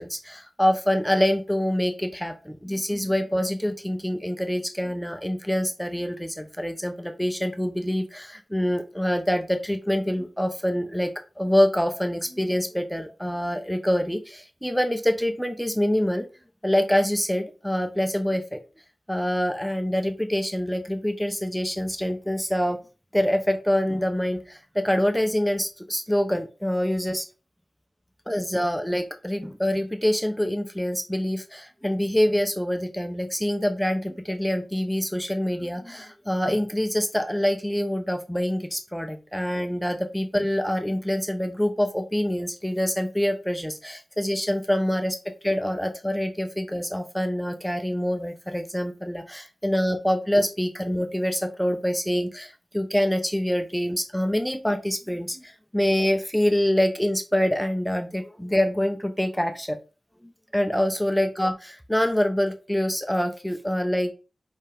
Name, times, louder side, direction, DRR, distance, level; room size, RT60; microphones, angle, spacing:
voice 1, 0.0-16.3 16.6-18.6 19.1-22.8 23.1-27.3 28.3-45.2 45.4-59.8 60.2-64.1, equal, ahead, 6 dB, 0.8 m, -25 dB
5.3 x 5.0 x 3.5 m, 0.32 s
wide cardioid pair, 60°, 0 cm